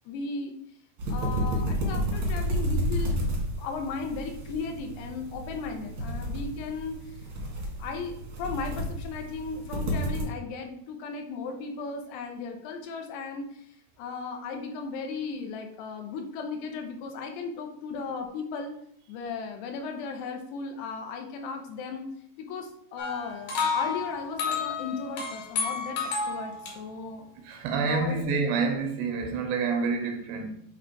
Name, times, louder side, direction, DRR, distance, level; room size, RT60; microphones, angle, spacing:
voice 1, 0.1-0.5 1.1-3.2 3.6-7.3 7.8-13.7 14.0-18.7 19.1-22.0 22.4-27.2 27.8-28.4, left 4 dB, 80° left, 2.8 m, -36 dB
sound 1, 1.0-10.2, equal, 65° right, 1.3 m, -31 dB
sound 2, 23.0-26.7, left 5 dB, 65° left, 2.6 m, -31 dB
voice 2, 27.4-30.5, right 4 dB, 90° right, 3.0 m, -28 dB
8.3 x 2.9 x 4.5 m
omnidirectional pair, 4.8 m